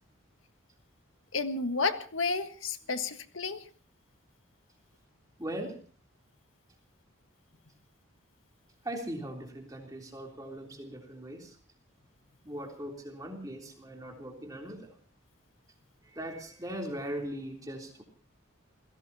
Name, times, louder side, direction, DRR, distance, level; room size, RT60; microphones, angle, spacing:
voice 1, 1.3-3.6, left 4 dB, 75° left, 8 dB, 1.5 m, -31 dB
voice 2, 5.4-5.8 8.8-11.6 12.4-14.9 16.0-18.0, right 1 dB, 15° right, 1 dB, 3.4 m, -39 dB
28.5 x 17.0 x 2.9 m, 0.41 s
head